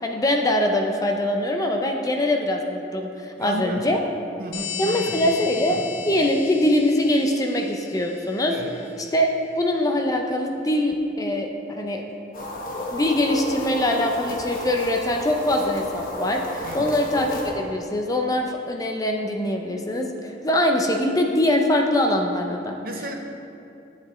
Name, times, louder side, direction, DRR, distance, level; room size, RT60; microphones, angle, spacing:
voice 1, 0.0-4.0 4.8-5.8 6.1-8.6 9.1-11.5 11.8-12.0 12.9-17.3 17.5-22.8, left 1 dB, 20° left, 3 dB, 0.5 m, -23 dB
voice 2, 3.4-3.9 4.4-5.2 5.7-5.9 8.5-8.7 16.6-16.9 22.8-23.1, right 1 dB, 55° right, 3 dB, 0.8 m, -33 dB
sound 1, 4.5-8.8, left 8 dB, 75° left, 0.7 m, -36 dB
sound 2, 12.3-17.5, left 1 dB, 50° left, 1.1 m, -32 dB
11.0 x 8.3 x 3.1 m, 2.7 s
head